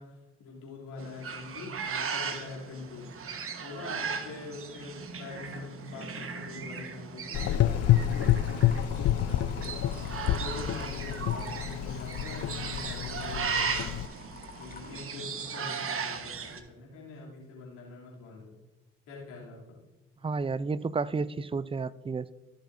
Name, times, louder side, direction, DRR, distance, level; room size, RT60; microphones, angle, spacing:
voice 1, 0.0-3.1 3.6-14.0 14.6-18.5 19.1-19.8, left 3 dB, 75° left, -4 dB, 3.0 m, -44 dB
sound 1, 1.0-16.6, right 6 dB, 45° right, 1.3 m, -37 dB
Gurgling / Engine, 7.3-14.1, left 12 dB, 50° left, 0.6 m, -28 dB
sound 2, 7.6-15.0, left 3 dB, 25° left, 1.8 m, -49 dB
voice 2, 20.2-22.3, right 4 dB, 15° right, 17 dB, 0.5 m, -31 dB
15.0 x 6.7 x 2.7 m, 1.2 s
hypercardioid pair, 45°, 32 cm